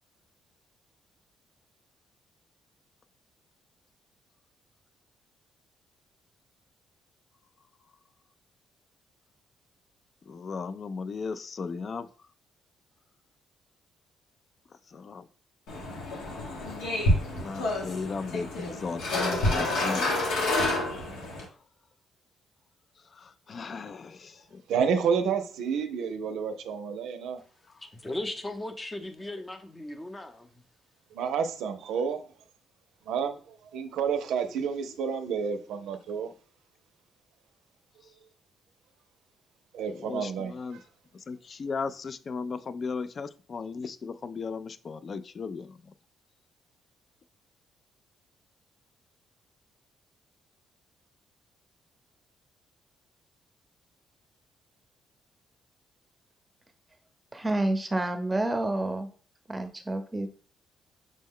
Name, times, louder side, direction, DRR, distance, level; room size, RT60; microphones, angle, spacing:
voice 1, 10.3-12.1 14.9-15.2 17.4-20.1 23.1-24.6 39.9-40.8 41.3-45.8, left 4 dB, 45° left, 0.3 m, -36 dB
sound 1, 15.7-21.4, left 1 dB, 85° left, 1.3 m, -28 dB
voice 2, 24.7-27.4 31.1-32.2 33.1-36.3 39.7-40.6, right 6 dB, 85° right, 0.5 m, -30 dB
voice 3, 27.8-30.5, left 1 dB, 20° left, 0.7 m, -37 dB
voice 4, 57.3-59.1 59.5-60.3, right 2 dB, 15° right, 0.7 m, -29 dB
6.2 x 2.1 x 3.6 m
cardioid pair, 90°, 0 cm